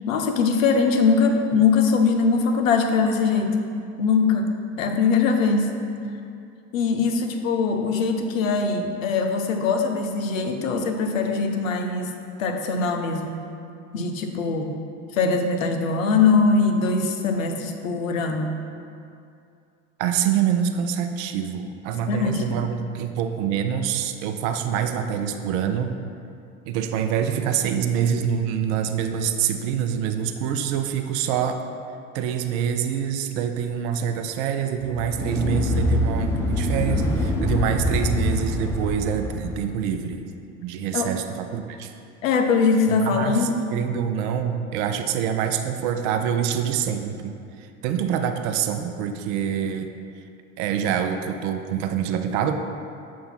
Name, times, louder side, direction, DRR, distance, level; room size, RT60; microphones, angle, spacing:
voice 1, 0.1-3.6 4.0-5.7 6.0-6.1 6.7-12.1 12.4-13.4 13.9-14.7 15.1-18.5 22.1-22.7 40.9-41.1 42.2-43.6, left 4 dB, 80° left, 5 dB, 0.7 m, -22 dB
voice 2, 20.0-25.9 26.7-31.6 32.1-40.3 40.6-41.9 42.9-49.9 50.6-52.5, right 8 dB, 60° right, 6 dB, 0.6 m, -26 dB
sound 1, 34.8-39.7, left 1 dB, 5° left, 0.7 m, -25 dB
6.8 x 2.6 x 5.6 m, 2.5 s
hypercardioid pair, 75°, 39 cm